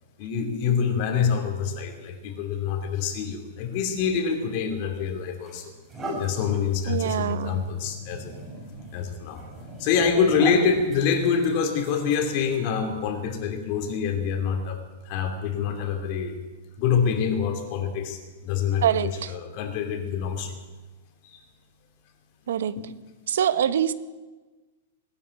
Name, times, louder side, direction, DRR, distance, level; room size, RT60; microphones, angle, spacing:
voice 1, 0.2-5.7 6.2-8.3 8.9-14.8 15.0-16.4 16.8-20.6 21.2-21.4 22.8-22.9, left 6 dB, 35° left, 3.0 m, -26 dB
sound 1, 4.6-4.8 5.4-12.8, right 1 dB, 10° right, 6.1 m, -39 dB
voice 2, 6.9-7.6 18.8-19.3 22.5-22.8 23.3-23.9, right 9 dB, 70° right, 1.0 m, -24 dB
19.5 x 14.0 x 9.7 m
supercardioid pair, 175°, 0 cm